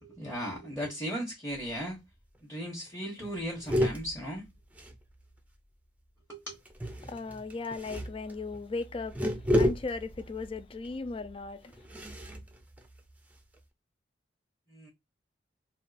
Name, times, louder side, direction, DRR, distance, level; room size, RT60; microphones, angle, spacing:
voice 1, 0.0-2.0 2.4-4.5 6.3-6.6 14.7-14.9, equal, 10° left, 1.3 m, -37 dB
pushing a chair, 1.5-2.0 2.3-2.4 2.6-2.9 3.2-5.5 6.6-13.6, equal, 10° right, 0.6 m, -33 dB
voice 2, 7.1-11.7, left 3 dB, 30° left, 0.4 m, -37 dB
3.7 x 2.4 x 4.1 m
head